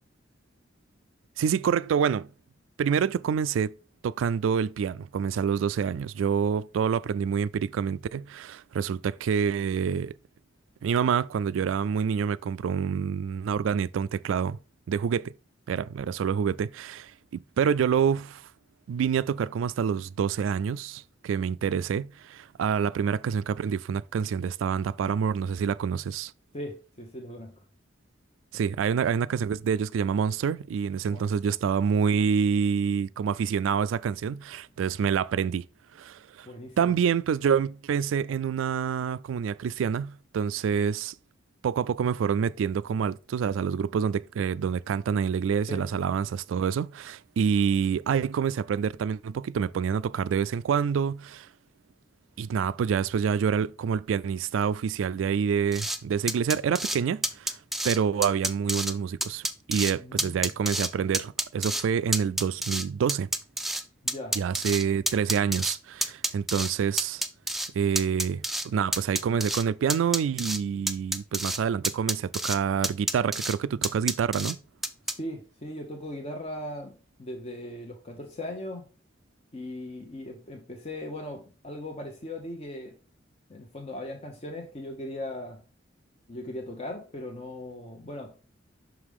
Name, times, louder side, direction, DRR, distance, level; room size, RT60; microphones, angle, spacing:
voice 1, 1.4-2.3 2.8-3.7 4.0-10.1 10.8-14.6 14.9-15.3 15.7-18.4 18.9-26.3 28.5-35.7 36.0-36.5 36.8-41.1 41.6-51.5 52.4-57.6 57.8-63.3 64.3-67.2 67.7-74.6, right 7 dB, 90° right, 0.3 m, -27 dB
voice 2, 26.5-27.6 31.1-31.3 36.5-36.9 45.7-45.9 60.0-60.5 64.0-64.4 75.1-76.9 77.2-78.9 79.5-83.0 83.5-85.6 86.3-88.4, left 1 dB, 35° left, 0.8 m, -38 dB
sound 1, 55.7-56.0 56.3-57.0 57.2-58.0 58.2-58.9 59.2-59.9 60.2-60.9 61.1-61.8 62.1-63.8 64.1-65.8 66.0-66.7 67.0-67.7 68.0-68.7 68.9-69.6 69.9-70.6 70.9-71.6 71.8-72.6 72.8-73.5 73.8-74.5 74.8-75.1, right 1 dB, ahead, 0.4 m, -29 dB
6.0 x 4.9 x 3.6 m
head